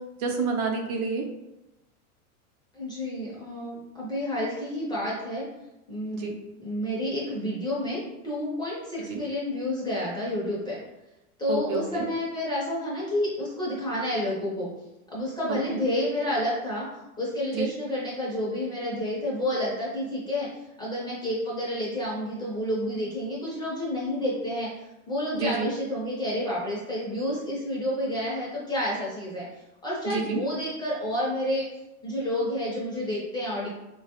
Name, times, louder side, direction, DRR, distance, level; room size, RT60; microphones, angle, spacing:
voice 1, 0.2-1.2 6.1-6.3 9.1-9.2 11.5-12.1 15.7-15.8 17.6-17.7 25.3-25.7 30.1-30.4, right 4 dB, 70° right, 2 dB, 0.7 m, -28 dB
voice 2, 2.7-5.4 5.9-6.3 6.6-10.8 11.4-14.7 15.1-16.9 17.2-20.5 20.8-24.7 25.1-29.5 29.8-31.6 32.0-33.7, left 1 dB, 10° left, -6 dB, 0.5 m, -29 dB
3.0 x 2.3 x 2.8 m, 0.96 s
supercardioid pair, 130°, 45 cm